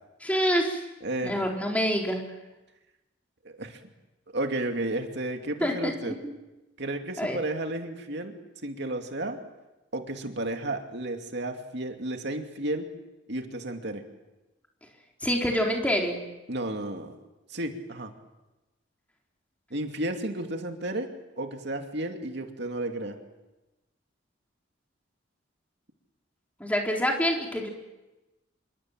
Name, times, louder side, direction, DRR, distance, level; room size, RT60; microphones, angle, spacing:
voice 1, 0.2-0.8 1.2-2.2 5.6-6.3 7.2-7.4 15.2-16.2 26.6-27.7, equal, 10° left, 0 dB, 4.1 m, -26 dB
voice 2, 1.0-1.4 3.4-3.8 4.3-6.2 6.8-8.4 8.6-9.4 9.9-12.9 13.3-14.0 16.5-17.2 17.5-18.1 19.7-21.1 21.4-23.2, right 1 dB, 65° right, 4 dB, 2.6 m, -32 dB
27.5 x 24.0 x 7.6 m, 1.0 s
head